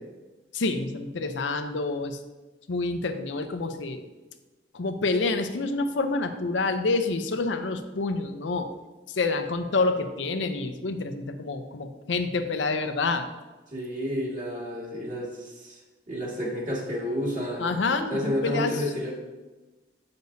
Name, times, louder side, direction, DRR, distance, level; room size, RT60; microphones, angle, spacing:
voice 1, 0.5-2.2 2.7-4.1 4.7-8.7 9.1-13.3 17.6-18.7, left 3 dB, 80° left, 7 dB, 0.6 m, -28 dB
voice 2, 13.7-15.8 16.1-17.7 18.1-19.1, equal, 45° right, -4 dB, 1.9 m, -30 dB
7.9 x 6.7 x 2.7 m, 1.2 s
head